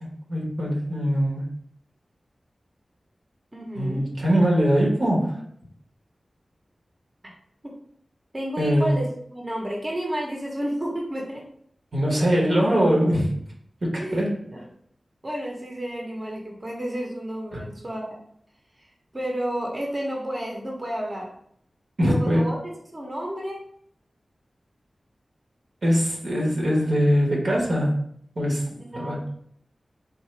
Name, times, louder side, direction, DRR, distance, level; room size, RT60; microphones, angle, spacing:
voice 1, 0.0-1.4 3.7-5.4 8.6-9.0 11.9-13.3 13.8-14.4 17.5-17.6 22.0-22.4 25.8-27.9 28.4-28.6 28.9-29.2, equal, 75° right, -2 dB, 1.1 m, -22 dB
voice 2, 3.5-4.1 7.6-7.7 8.3-11.4 14.0-14.2 14.5-14.6 15.2-18.2 19.1-21.3 22.0-23.6 28.8-29.2, equal, 35° right, -1 dB, 0.8 m, -31 dB
3.7 x 2.5 x 3.2 m, 0.66 s
cardioid pair, 50°, 0 cm